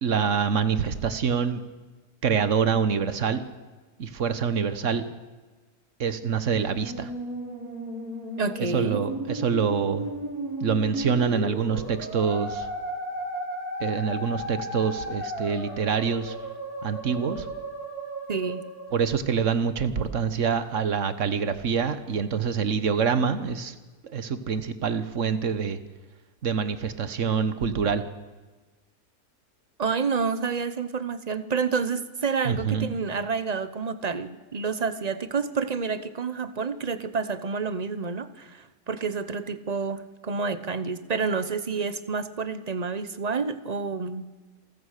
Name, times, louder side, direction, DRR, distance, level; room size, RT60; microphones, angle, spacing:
voice 1, 0.0-1.6 2.2-3.4 4.0-5.0 6.0-7.1 8.7-10.1 10.6-12.7 13.8-16.3 16.8-17.5 18.9-23.7 24.0-25.8 26.4-28.0 32.4-32.9, right 6 dB, 55° right, 12 dB, 1.5 m, -26 dB
Musical instrument, 6.4-19.7, right 1 dB, 75° right, 6.1 m, -35 dB
voice 2, 8.4-9.0 18.3-18.7 29.8-44.3, right 5 dB, 30° right, 13 dB, 0.9 m, -29 dB
27.5 x 14.5 x 6.7 m, 1.3 s
omnidirectional pair, 1.6 m